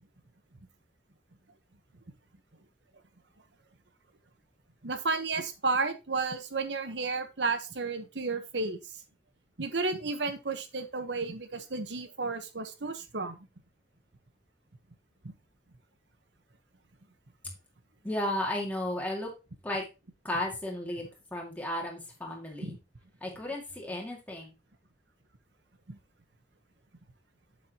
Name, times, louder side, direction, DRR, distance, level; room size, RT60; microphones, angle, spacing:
voice 1, 4.8-8.8 9.6-13.4 22.6-22.8 25.9-26.0, right 4 dB, 80° right, 9 dB, 1.1 m, -32 dB
voice 2, 18.0-19.3 19.6-19.8 20.2-21.0 21.3-22.8 23.2-24.5, left 1 dB, 10° left, -1 dB, 2.2 m, -34 dB
7.7 x 7.4 x 3.0 m, 0.27 s
head